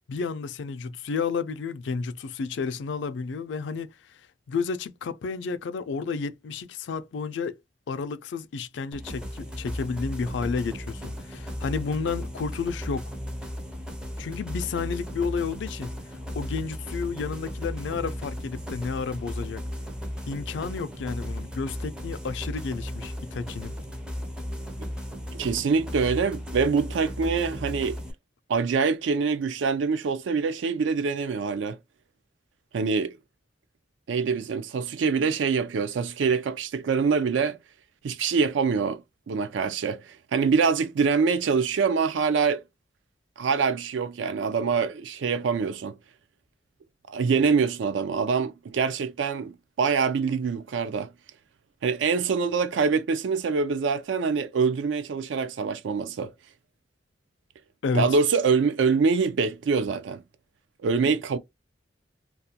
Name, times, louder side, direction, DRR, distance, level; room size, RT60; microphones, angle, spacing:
voice 1, 0.1-4.2 4.5-7.6 7.9-13.1 14.2-15.9 16.4-19.6 20.3-23.8 57.8-58.1, left 5 dB, 70° left, 0.4 m, -31 dB
sound 1, 8.9-28.1, equal, 5° right, 0.4 m, -35 dB
voice 2, 25.3-28.0 28.5-31.8 32.7-33.1 34.1-37.6 38.0-39.0 39.3-42.6 43.4-46.0 47.1-51.1 51.8-56.3 57.9-60.2 60.8-61.4, right 5 dB, 75° right, 0.4 m, -25 dB
2.4 x 2.1 x 2.7 m
head